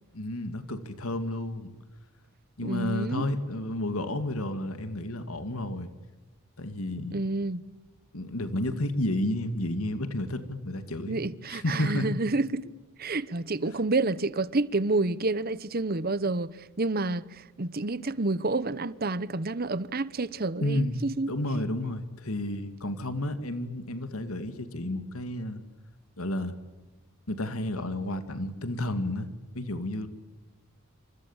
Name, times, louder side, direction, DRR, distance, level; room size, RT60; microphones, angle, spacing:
voice 1, 0.1-1.7 2.6-5.9 6.6-7.2 8.1-11.2 11.5-12.1 20.6-25.6 26.2-26.5 27.3-30.1, left 1 dB, 75° left, 2.3 m, -31 dB
voice 2, 2.6-3.3 7.1-7.6 11.1-12.7 13.0-16.5 16.8-21.4, right 3 dB, 45° right, 0.9 m, -29 dB
28.0 x 26.5 x 7.3 m
head